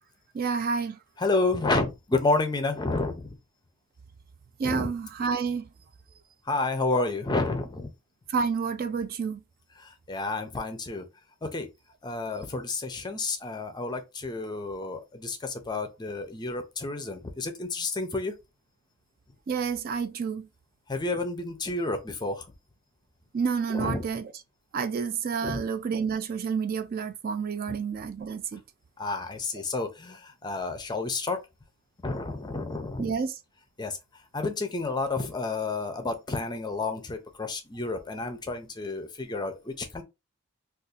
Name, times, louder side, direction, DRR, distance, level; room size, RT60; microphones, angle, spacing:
voice 1, 0.3-1.0 4.6-5.7 8.3-9.4 19.5-20.5 23.3-24.3 24.7-28.6 33.0-33.3, right 5 dB, 40° right, 0.3 m, -29 dB
voice 2, 1.2-3.3 4.6-4.9 6.5-7.9 9.8-11.1 11.4-11.7 12.0-18.3 20.9-22.5 23.7-24.1 25.4-25.6 27.7-27.8 29.0-31.4 32.0-33.1 33.8-34.0 34.3-40.0, left 3 dB, 20° left, 0.5 m, -30 dB
2.6 x 2.4 x 3.7 m
head